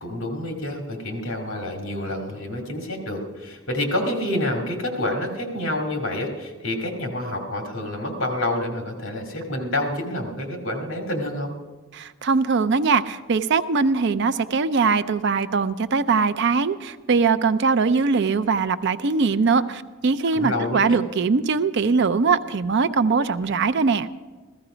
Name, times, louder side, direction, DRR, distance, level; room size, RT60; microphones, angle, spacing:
voice 1, 0.0-11.5 20.3-21.0, left 1 dB, 65° left, 2 dB, 2.2 m, -28 dB
voice 2, 11.9-24.1, right 4 dB, 55° right, 12 dB, 0.5 m, -21 dB
15.5 x 14.0 x 5.0 m, 1.3 s
head